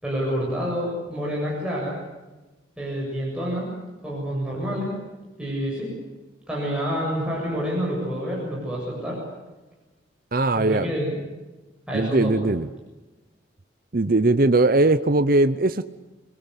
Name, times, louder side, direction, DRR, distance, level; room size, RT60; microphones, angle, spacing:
voice 1, 0.0-2.0 2.8-3.7 4.0-5.0 5.4-6.0 6.5-9.2 10.6-11.2 11.9-12.5, equal, 5° right, -5 dB, 7.4 m, -28 dB
voice 2, 10.3-10.9 11.9-12.7 13.9-15.9, right 2 dB, 50° right, 11 dB, 0.8 m, -20 dB
28.0 x 21.0 x 8.2 m, 1.1 s
head